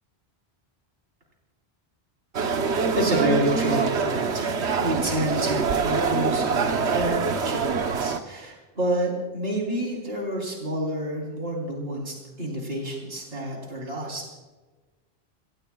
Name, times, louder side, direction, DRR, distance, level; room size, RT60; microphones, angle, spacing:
sound 1, 2.3-8.2, right 5 dB, 80° right, 1.3 m, -25 dB
voice 1, 2.9-14.2, right 1 dB, 65° right, -2 dB, 4.2 m, -29 dB
28.5 x 19.0 x 2.4 m, 1.2 s
omnidirectional pair, 1.1 m